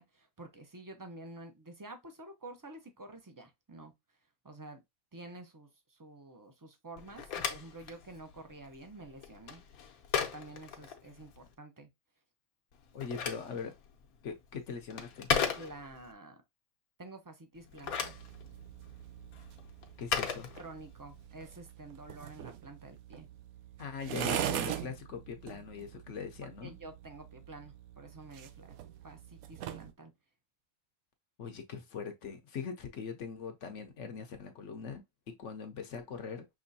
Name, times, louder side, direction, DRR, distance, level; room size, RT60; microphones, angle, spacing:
voice 1, 0.0-3.9 4.4-4.8 5.1-9.6 10.2-11.9 15.5-16.4 17.0-18.2 20.6-23.3 26.4-28.8 29.0-30.1, right 2 dB, 25° right, 0.4 m, -49 dB
Telephone, 7.0-11.5 12.7-16.1 17.6-21.2, left 7 dB, 80° left, 1.2 m, -37 dB
voice 2, 12.9-13.7 14.2-15.3 20.0-20.5 23.8-26.7 31.4-36.4, left 6 dB, 65° left, 0.9 m, -41 dB
sound 1, 17.8-29.9, right 10 dB, 75° right, 1.0 m, -42 dB
6.0 x 3.1 x 2.6 m
omnidirectional pair, 1.5 m